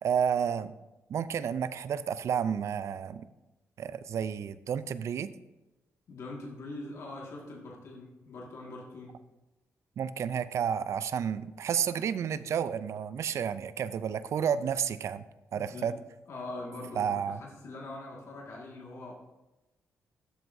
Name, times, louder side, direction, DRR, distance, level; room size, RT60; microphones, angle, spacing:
voice 1, 0.0-0.7 1.1-3.2 3.8-5.3 10.0-15.2 15.5-15.9 17.0-17.4, right 8 dB, 65° right, 15 dB, 0.4 m, -31 dB
voice 2, 6.1-9.2 15.5-15.9 16.3-19.1, left 2 dB, 65° left, -2 dB, 1.9 m, -43 dB
12.5 x 7.8 x 2.7 m, 1.0 s
cardioid pair, 110°, 5 cm